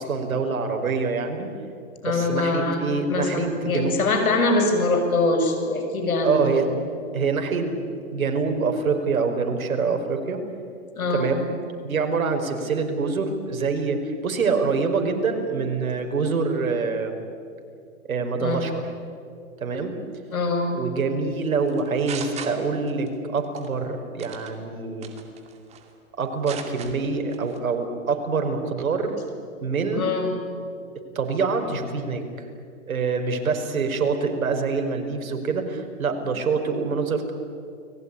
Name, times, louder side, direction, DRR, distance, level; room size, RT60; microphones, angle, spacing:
voice 1, 0.0-1.5 2.0-4.0 6.2-6.7 7.1-7.7 8.1-10.4 11.1-11.5 11.8-17.2 18.1-18.8 19.6-19.9 20.7-25.1 26.2-29.1 29.6-30.1 31.1-32.2 32.9-37.3, right 4 dB, 80° right, 4 dB, 5.1 m, -25 dB
voice 2, 2.0-6.6 11.0-11.4 18.4-18.6 20.3-20.8 29.9-30.4, left 2 dB, 85° left, 5 dB, 7.1 m, -23 dB
sound 1, 21.7-23.1 23.4-23.7 24.2-24.5 25.0-25.9 26.2-26.9 27.3-27.6, right 7 dB, 15° right, 2.4 m, -37 dB
29.5 x 20.5 x 9.9 m, 2.5 s
hypercardioid pair, 150°, 41 cm